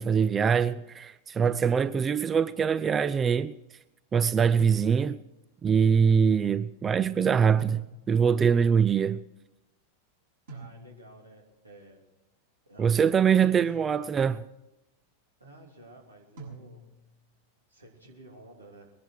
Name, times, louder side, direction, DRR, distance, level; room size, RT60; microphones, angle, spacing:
voice 1, 0.0-3.5 4.1-5.2 5.6-9.2 12.8-14.4, right 7 dB, 20° right, 0.4 m, -23 dB
sound 1, 1.5-2.2 4.6-5.3 7.6-8.4 10.5-11.2 13.4-14.2 16.4-17.2, right 3 dB, 60° right, 6.6 m, -46 dB
voice 2, 10.5-12.0 12.6-13.4 13.8-14.1 15.4-16.8 17.7-18.9, right 2 dB, 80° right, 3.1 m, -52 dB
21.5 x 11.0 x 4.8 m
figure-of-eight pair, 90°, 0 cm